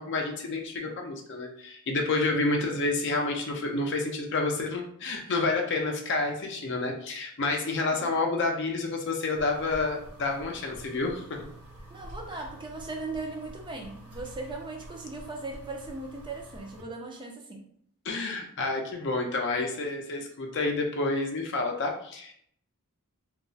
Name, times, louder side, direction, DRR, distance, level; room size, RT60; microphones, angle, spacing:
voice 1, 0.0-11.5 18.0-22.3, left 3 dB, 55° left, 2 dB, 0.5 m, -29 dB
sound 1, 9.3-16.8, right 1 dB, 85° right, 0.8 m, -47 dB
voice 2, 11.9-17.6, right 3 dB, 20° right, 1 dB, 0.4 m, -38 dB
2.3 x 2.0 x 3.9 m, 0.66 s
head